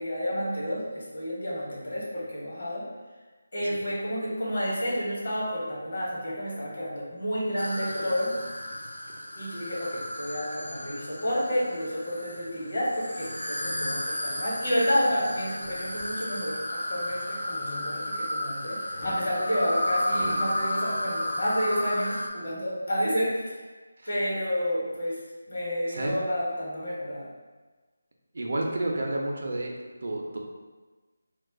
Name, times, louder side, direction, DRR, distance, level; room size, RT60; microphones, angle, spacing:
voice 1, 0.0-2.8 3.5-8.3 9.3-23.6 24.1-25.2 25.5-27.3, equal, 60° left, -5 dB, 1.0 m, -30 dB
sound 1, 7.6-22.3, left 1 dB, 90° left, 0.4 m, -33 dB
sound 2, 15.6-16.2 16.7-18.3 18.9-20.6, left 1 dB, 25° left, 0.4 m, -44 dB
voice 2, 25.9-26.2 28.3-29.7 30.0-30.4, right 1 dB, 60° right, 0 dB, 0.5 m, -30 dB
2.3 x 2.2 x 3.6 m, 1.3 s
figure-of-eight pair, 160°, 0 cm